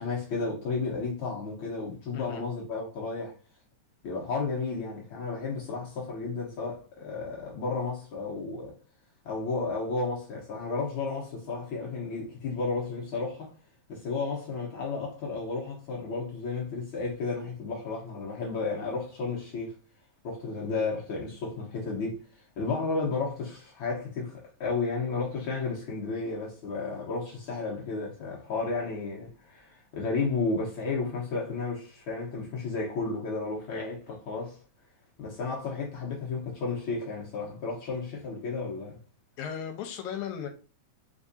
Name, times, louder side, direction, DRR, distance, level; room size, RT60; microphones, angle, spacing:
voice 1, 0.0-3.3 4.0-8.7 9.2-13.5 13.9-19.7 20.2-34.6 35.2-39.0, left 4 dB, 60° left, 1.4 m, -33 dB
voice 2, 39.4-40.5, left 8 dB, 85° left, 2.1 m, -36 dB
4.5 x 3.6 x 2.6 m
omnidirectional pair, 3.4 m